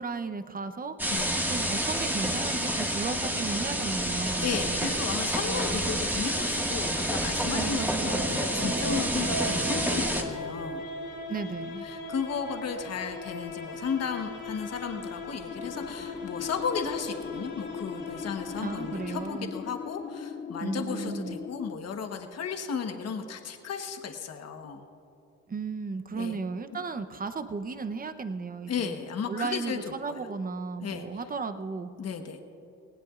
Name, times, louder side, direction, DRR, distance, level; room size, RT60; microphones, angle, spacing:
voice 1, 0.0-1.1 1.5-4.9 5.5-6.0 7.5-8.3 11.3-11.9 18.6-19.5 20.6-21.4 25.5-28.9 29.3-31.9, right 4 dB, 30° right, 10 dB, 0.8 m, -35 dB
Slow Moving Steam Train Onboard, 1.0-10.2, equal, 5° right, 1.8 m, -29 dB
voice 2, 4.4-10.8 11.8-24.8 26.1-26.4 26.7-26.8 28.7-29.8 30.1-30.2 30.8-31.1 32.0-32.4, left 6 dB, 55° left, 5 dB, 1.2 m, -34 dB
sound 1, 7.2-20.1, left 2 dB, 85° left, 3.9 m, -39 dB
sound 2, 15.5-21.8, left 6 dB, 25° left, 0.5 m, -40 dB
18.5 x 18.0 x 2.5 m, 2.7 s
cardioid pair, 90°, 30 cm